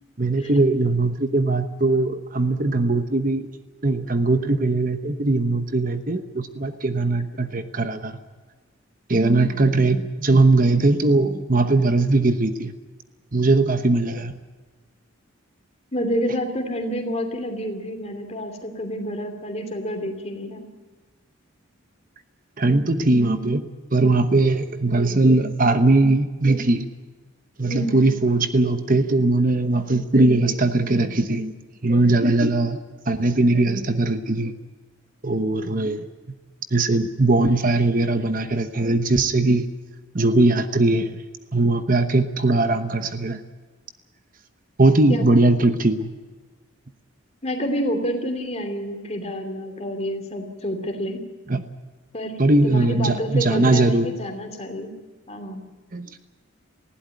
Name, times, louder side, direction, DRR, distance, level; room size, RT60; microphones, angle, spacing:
voice 1, 0.2-3.5 3.8-8.2 9.1-12.7 13.3-14.3 22.6-26.9 27.6-31.5 31.8-32.8 33.1-34.5 35.2-36.1 36.7-39.7 40.1-41.1 41.5-43.4 44.8-46.1 51.5-51.6 52.4-54.1 55.9-56.2, right 2 dB, 40° right, 9 dB, 1.0 m, -20 dB
voice 2, 15.9-20.7 27.7-28.0 45.1-45.4 47.4-51.3 52.1-55.0 55.3-55.6, equal, 30° left, 5 dB, 2.8 m, -28 dB
20.0 x 16.0 x 9.2 m, 1.4 s
head